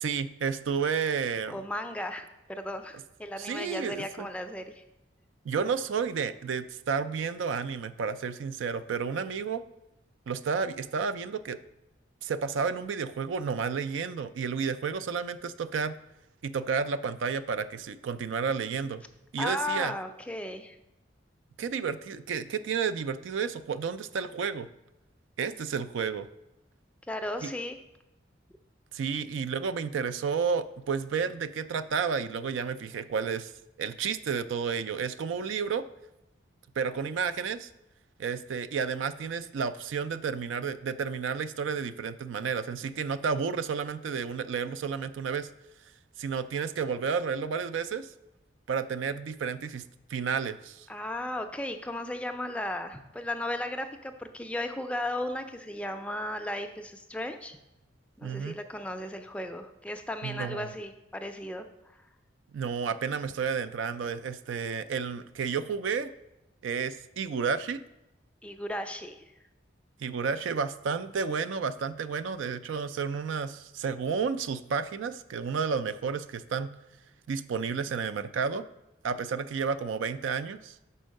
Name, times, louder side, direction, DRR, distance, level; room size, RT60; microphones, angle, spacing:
voice 1, 0.0-1.6 3.4-4.3 5.5-9.6 10.3-11.6 12.2-15.9 16.4-19.0 19.3-19.9 21.6-24.7 25.4-26.3 27.4-27.5 28.9-33.5 33.8-35.8 36.8-37.7 38.2-45.5 46.2-48.1 48.7-49.8 50.1-50.9 58.2-58.6 60.2-60.7 62.5-66.1 66.6-67.8 70.0-76.7 77.3-78.7 79.0-80.8, right 6 dB, 85° right, 13 dB, 0.4 m, -31 dB
voice 2, 1.5-4.8 19.4-20.8 27.1-27.8 50.9-57.6 58.2-61.7 68.4-69.3, left 1 dB, 5° left, 7 dB, 0.4 m, -35 dB
5.5 x 4.4 x 6.3 m, 0.93 s
head